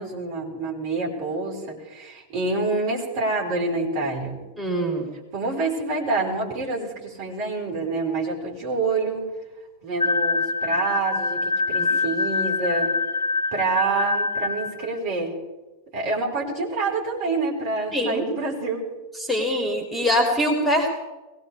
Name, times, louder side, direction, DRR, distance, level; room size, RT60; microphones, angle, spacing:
voice 1, 0.0-4.4 5.3-9.3 9.8-12.9 13.5-15.4 15.9-18.9, right 3 dB, 50° right, -2 dB, 4.8 m, -27 dB
voice 2, 4.6-5.1 11.8-11.9 17.9-18.2 19.2-20.9, equal, 5° left, 1 dB, 3.1 m, -23 dB
sound 1, 10.0-14.9, left 3 dB, 90° right, 0.8 m, -25 dB
22.5 x 18.0 x 3.5 m, 1.1 s
figure-of-eight pair, 90°, 0 cm